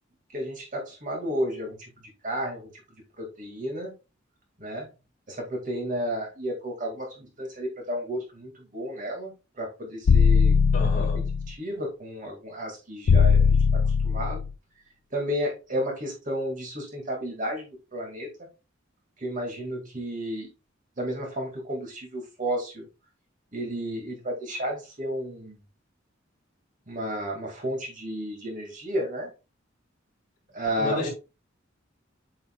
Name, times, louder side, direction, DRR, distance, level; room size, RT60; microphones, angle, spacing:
voice 1, 0.3-1.9 2.2-2.7 3.2-3.9 4.6-4.9 5.3-10.5 10.9-11.1 11.5-13.4 13.7-14.4 15.1-18.3 19.2-20.5 21.0-22.8 23.5-25.6 26.9-29.3 30.5-31.1, equal, 40° right, 1 dB, 2.1 m, -32 dB
sound 1, 10.1-11.5 13.1-14.5, left 5 dB, 70° left, 0.3 m, -20 dB
voice 2, 10.7-11.3 30.8-31.1, left 2 dB, 40° left, -5 dB, 3.4 m, -31 dB
8.0 x 5.6 x 2.3 m, 0.28 s
head